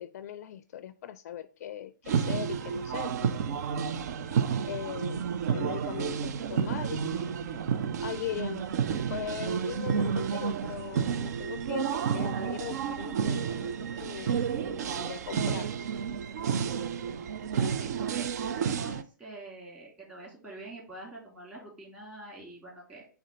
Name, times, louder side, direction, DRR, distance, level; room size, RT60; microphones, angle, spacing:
voice 1, 0.0-3.8 4.7-5.2 5.5-7.4 8.0-8.6 9.1-15.7, left 10 dB, 50° left, 13 dB, 0.4 m, -40 dB
sound 1, 2.1-19.0, right 7 dB, 55° right, 0.5 m, -31 dB
voice 2, 17.4-23.1, right 2 dB, 15° right, -4 dB, 3.4 m, -46 dB
4.9 x 3.4 x 5.5 m, 0.38 s
hypercardioid pair, 125°, 11 cm